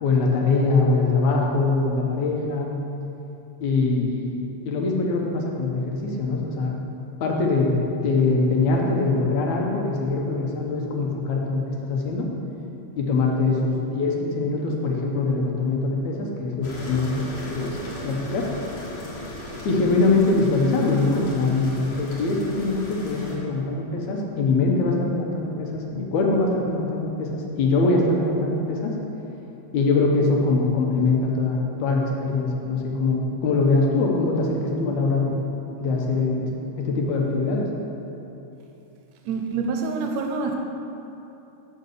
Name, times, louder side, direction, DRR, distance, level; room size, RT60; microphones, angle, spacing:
voice 1, 0.0-2.7 3.6-6.8 7.2-7.8 8.0-12.3 13.0-17.8 18.0-18.5 19.7-29.0 29.7-35.4 35.8-36.5 36.8-37.7, left 3 dB, 80° left, 0 dB, 2.4 m, -23 dB
sound 1, 16.6-23.4, left 1 dB, 50° left, 2.2 m, -37 dB
voice 2, 39.3-40.6, right 4 dB, 75° right, 3 dB, 1.9 m, -26 dB
6.7 x 6.7 x 6.6 m, 2.9 s
omnidirectional pair, 3.3 m